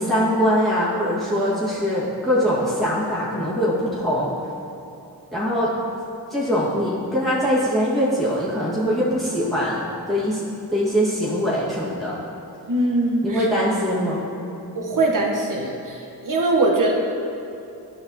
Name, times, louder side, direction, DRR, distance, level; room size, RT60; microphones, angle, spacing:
voice 1, 0.0-4.3 5.3-5.7 6.3-9.8 10.1-10.4 10.7-12.2 13.2-14.2, equal, ahead, -9 dB, 1.6 m, -22 dB
voice 2, 12.7-13.5 14.7-16.9, right 2 dB, 50° right, 0 dB, 1.1 m, -22 dB
10.0 x 5.5 x 2.8 m, 2.8 s
cardioid pair, 45°, 41 cm